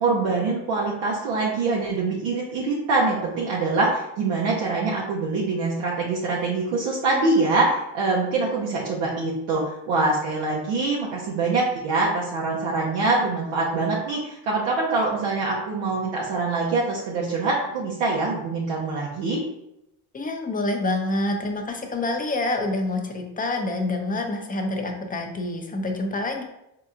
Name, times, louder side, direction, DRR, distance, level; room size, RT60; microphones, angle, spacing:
voice 1, 0.0-19.4, right 3 dB, 75° right, -4 dB, 0.8 m, -24 dB
voice 2, 20.1-26.4, left 2 dB, 20° left, 3 dB, 0.6 m, -27 dB
4.2 x 2.8 x 2.4 m, 0.83 s
supercardioid pair, 70°, 45 cm